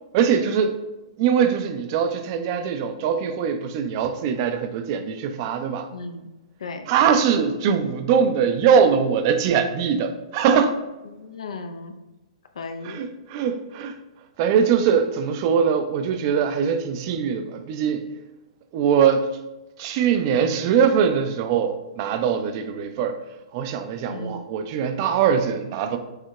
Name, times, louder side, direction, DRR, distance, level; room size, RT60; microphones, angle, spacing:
voice 1, 0.1-0.8 1.2-5.9 6.9-10.8 12.8-14.0 14.4-18.0 18.7-19.3 19.8-23.2 23.5-26.0, right 7 dB, 40° right, 0.4 m, -22 dB
voice 2, 5.9-6.3 6.6-6.9 11.2-11.9 12.6-13.1 24.1-24.4, left 3 dB, 65° left, 0.5 m, -35 dB
6.5 x 2.7 x 2.3 m
figure-of-eight pair, 115°, 3 cm